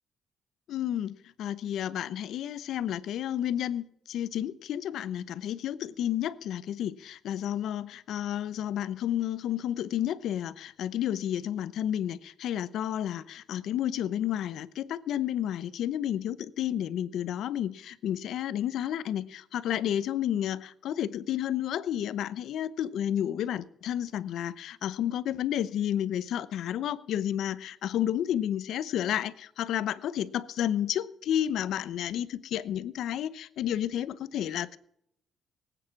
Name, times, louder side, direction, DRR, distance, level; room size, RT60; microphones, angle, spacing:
voice 1, 0.7-34.8, left 10 dB, 75° left, 0.7 m, -31 dB
18.5 x 9.1 x 5.9 m
cardioid pair, 90°, 0 cm